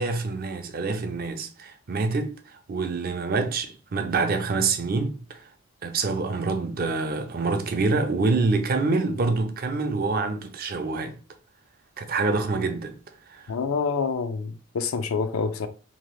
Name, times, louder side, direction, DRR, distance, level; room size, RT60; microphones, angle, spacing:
voice 1, 0.0-5.5 5.8-11.1 12.0-13.0 13.3-13.5, right 3 dB, 45° right, 0.4 m, -26 dB
voice 2, 13.5-15.7, left 5 dB, 85° left, 0.4 m, -27 dB
2.8 x 2.3 x 3.1 m
head